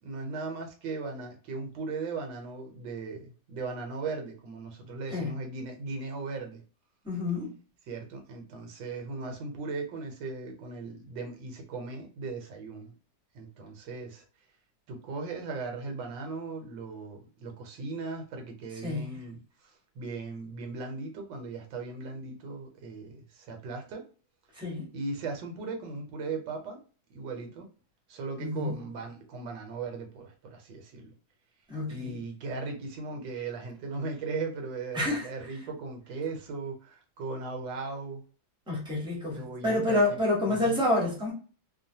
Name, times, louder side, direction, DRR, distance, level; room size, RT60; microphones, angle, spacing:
voice 1, 0.0-6.6 7.9-12.9 13.3-14.2 14.9-19.4 20.0-24.1 24.9-26.8 27.1-27.7 28.1-31.1 31.9-38.2 39.3-40.9, right 4 dB, 70° right, 1.3 m, -38 dB
voice 2, 7.0-7.5 18.8-19.1 24.6-24.8 28.4-28.7 31.7-32.1 34.9-35.2 38.7-41.3, left 2 dB, 5° right, 0.7 m, -28 dB
3.1 x 2.2 x 2.7 m
omnidirectional pair, 2.1 m